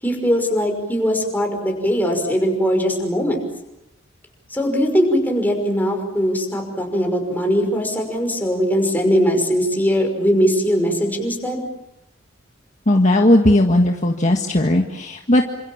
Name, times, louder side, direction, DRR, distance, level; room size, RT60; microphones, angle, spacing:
voice 1, 0.0-3.4 4.5-11.6, equal, 10° left, 3 dB, 5.7 m, -20 dB
voice 2, 12.8-15.5, left 1 dB, 40° left, 3 dB, 1.7 m, -16 dB
28.5 x 26.5 x 7.3 m, 0.89 s
head